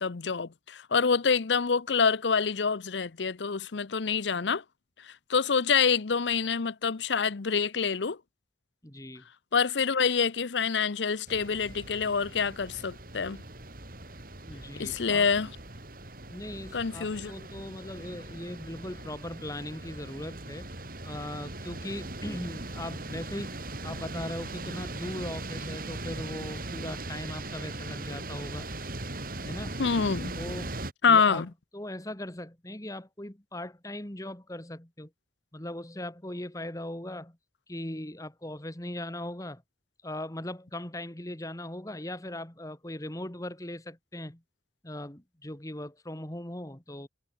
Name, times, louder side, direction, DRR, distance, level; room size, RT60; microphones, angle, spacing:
voice 1, 0.0-4.6 5.0-8.2 9.5-13.4 14.8-15.5 16.7-17.3 29.8-30.3 31.0-31.5, left 5 dB, 85° left, 0.7 m, -26 dB
voice 2, 8.8-9.2 14.5-15.3 16.3-20.7 21.0-28.9 29.4-29.8 30.4-30.8 31.1-31.4 31.7-35.1 35.5-37.4 37.7-39.6 40.0-44.4 44.8-47.1, left 1 dB, 20° left, 2.1 m, -39 dB
sound 1, 11.3-30.9, right 2 dB, 55° right, 4.8 m, -40 dB
head